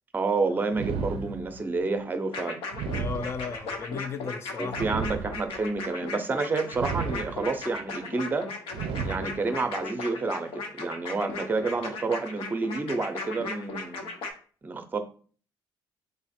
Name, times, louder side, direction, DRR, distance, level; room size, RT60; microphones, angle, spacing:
voice 1, 0.1-2.6 4.6-8.5 9.0-14.0 14.6-15.0, right 3 dB, 20° right, 0.5 m, -29 dB
sound 1, 0.7-1.8 2.7-3.8 4.7-5.8 6.7-7.8 8.7-9.8, right 6 dB, 80° right, 0.4 m, -34 dB
sound 2, 2.3-14.3, left 3 dB, 85° left, 0.8 m, -37 dB
voice 2, 2.9-4.9, left 5 dB, 30° left, 0.3 m, -35 dB
3.7 x 2.4 x 4.2 m
cardioid pair, 130°, 9 cm